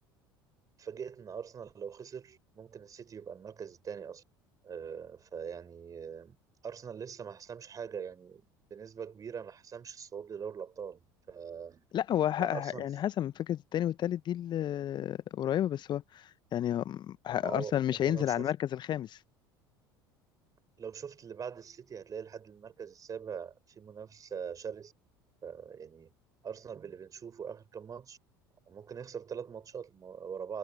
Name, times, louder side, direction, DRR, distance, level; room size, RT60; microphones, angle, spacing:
voice 1, 0.8-4.2 4.6-6.4 6.6-8.4 8.7-11.8 12.4-12.9 17.4-18.5 20.8-24.9 25.4-26.1 26.4-28.2 28.7-30.6, right 7 dB, 30° right, 5.0 m, -42 dB
voice 2, 11.9-16.0 16.5-19.2, left 11 dB, 40° left, 1.4 m, -31 dB
figure-of-eight pair, 65°, 12 cm